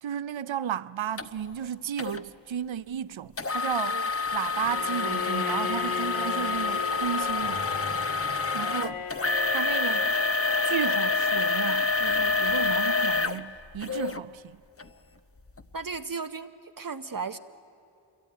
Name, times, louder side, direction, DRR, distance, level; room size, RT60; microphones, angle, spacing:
voice 1, 0.0-7.7 8.5-10.2 10.6-14.6, right 9 dB, 85° right, 0.6 m, -34 dB
sound 1, 1.2-1.3 2.0-2.2 3.4-14.2 14.8-14.9 15.5-15.6, left 4 dB, 30° left, 0.9 m, -27 dB
Bowed string instrument, 4.6-10.2, left 7 dB, 80° left, 2.7 m, -37 dB
voice 2, 15.7-17.4, right 5 dB, 45° right, 0.8 m, -35 dB
26.0 x 23.0 x 9.4 m
wide cardioid pair, 60°, 45 cm